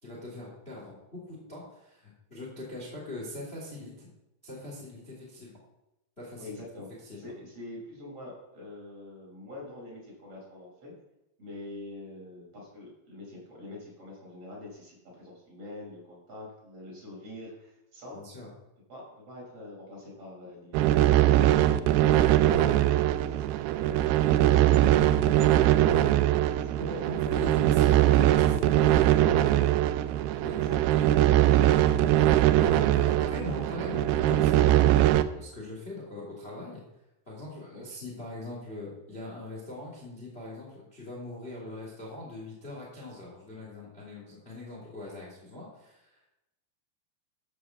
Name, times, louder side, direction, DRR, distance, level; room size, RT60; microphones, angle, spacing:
voice 1, 0.0-4.1 4.4-5.6 6.2-6.6 7.0-7.2 18.1-18.5 21.4-21.5 26.8-29.1 30.4-30.6 30.9-31.0 32.9-36.8 37.3-46.3, left 2 dB, 15° left, -3 dB, 2.8 m, -41 dB
voice 2, 6.4-6.9 7.2-10.9 11.4-18.2 18.9-20.8 21.5-27.0 28.6-28.7 29.4-33.1 37.7-37.9, left 2 dB, 35° right, -4 dB, 5.9 m, -46 dB
sound 1, 20.7-35.2, right 13 dB, 80° right, 2.6 m, -22 dB
12.5 x 7.1 x 7.3 m, 0.92 s
omnidirectional pair, 4.7 m